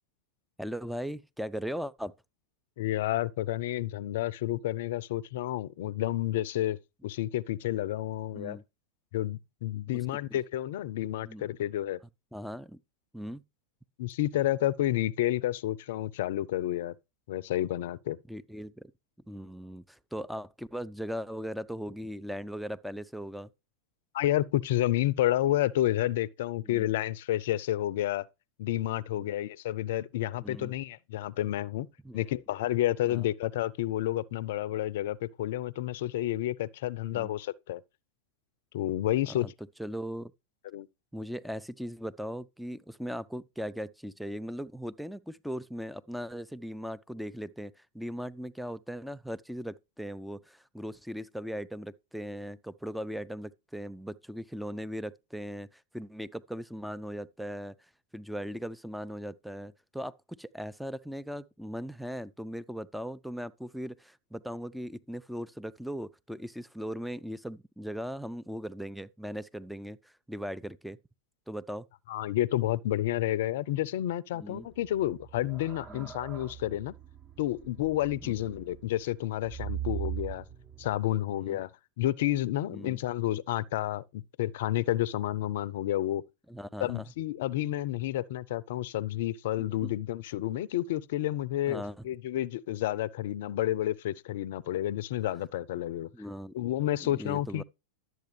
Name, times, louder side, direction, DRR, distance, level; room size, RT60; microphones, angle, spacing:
voice 1, 0.6-2.1 8.3-8.6 9.9-10.0 10.3-10.4 11.2-11.5 12.3-12.8 13.1-13.4 18.3-18.9 19.3-23.5 26.6-26.9 29.2-29.3 30.4-30.7 32.0-32.3 33.1-33.3 37.1-37.3 39.3-39.5 39.8-40.3 41.1-57.7 58.1-71.0 71.5-71.9 74.3-74.7 75.9-76.1 78.2-78.3 81.3-81.6 82.7-83.0 86.5-87.1 89.8-89.9 91.7-92.1 96.1-96.5 97.0-97.6, equal, ahead, 0.4 m, -39 dB
voice 2, 2.8-6.8 7.0-8.6 9.1-12.0 14.0-16.9 17.3-18.2 24.1-28.3 28.6-31.9 32.1-37.8 38.7-39.5 40.7-40.9 72.1-76.9 77.4-80.4 80.8-81.7 82.0-86.2 86.8-96.1 96.5-97.6, left 14 dB, 55° left, 0.5 m, -30 dB
sound 1, 74.7-80.9, right 11 dB, 30° right, 1.1 m, -40 dB
12.0 x 7.9 x 3.2 m
figure-of-eight pair, 90°, 0 cm